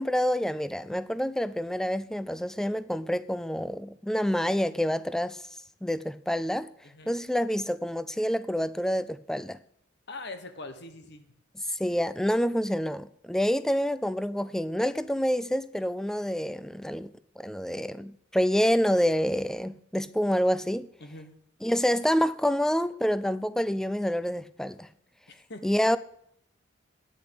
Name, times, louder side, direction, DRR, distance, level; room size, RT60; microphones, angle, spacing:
voice 1, 0.0-5.4 5.8-6.7 7.1-9.6 11.7-17.1 17.4-20.9 21.6-24.9 25.6-26.0, equal, 5° left, 0.3 m, -27 dB
voice 2, 6.8-7.1 10.1-11.3 21.0-21.4 25.3-25.7, left 2 dB, 55° left, 1.3 m, -42 dB
9.6 x 6.9 x 7.9 m
head